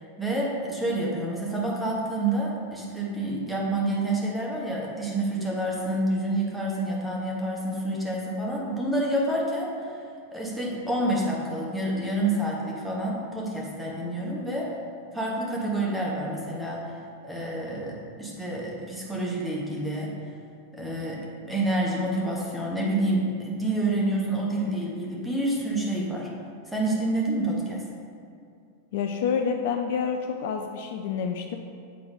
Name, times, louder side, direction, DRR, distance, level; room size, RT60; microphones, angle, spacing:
voice 1, 0.0-10.0 10.3-14.7 15.1-16.9 17.2-20.1 20.7-26.3 26.7-27.8, right 1 dB, ahead, -4 dB, 1.3 m, -28 dB
voice 2, 28.9-31.6, left 6 dB, 50° left, 4 dB, 0.3 m, -28 dB
7.9 x 3.8 x 3.9 m, 2.4 s
figure-of-eight pair, 90°, 0 cm